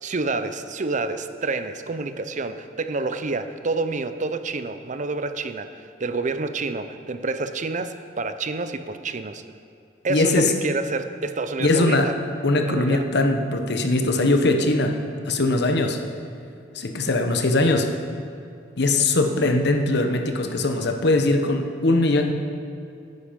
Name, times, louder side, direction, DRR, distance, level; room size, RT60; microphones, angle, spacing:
voice 1, 0.0-9.4 10.0-12.1 12.7-13.0, right 3 dB, 45° right, 10 dB, 0.6 m, -28 dB
voice 2, 10.1-10.5 11.6-12.1 12.4-15.0 15.3-16.0 16.7-17.9 18.8-22.3, left 2 dB, 65° left, 5 dB, 1.2 m, -21 dB
14.5 x 9.9 x 5.2 m, 2.5 s
head